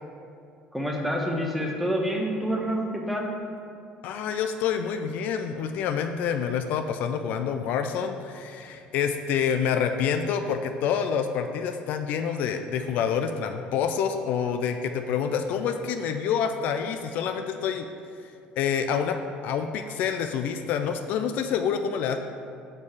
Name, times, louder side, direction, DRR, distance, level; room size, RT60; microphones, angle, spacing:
voice 1, 0.7-3.3, equal, ahead, 0 dB, 0.7 m, -27 dB
voice 2, 4.0-17.9 18.2-19.2 19.4-22.2, left 7 dB, 60° left, 7 dB, 0.4 m, -27 dB
7.0 x 4.4 x 4.8 m, 2.4 s
cardioid pair, 165°, 3 cm